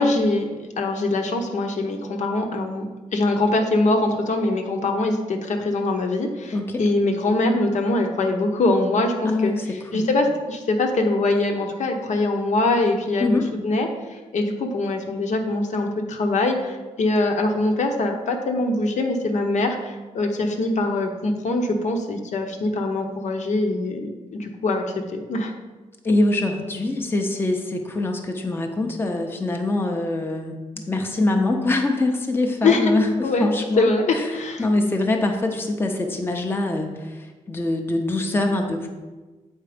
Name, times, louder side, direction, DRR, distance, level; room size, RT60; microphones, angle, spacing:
voice 1, 0.0-9.5 9.9-24.8 25.1-25.5 32.6-33.0 33.2-33.5 33.8-34.7, left 2 dB, 70° left, 3 dB, 1.0 m, -23 dB
voice 2, 9.2-9.7 9.9-10.1 13.2-13.5 26.0-38.9, left 2 dB, 15° left, 2 dB, 0.7 m, -24 dB
8.1 x 4.5 x 5.1 m, 1.2 s
wide cardioid pair, 140°, 13 cm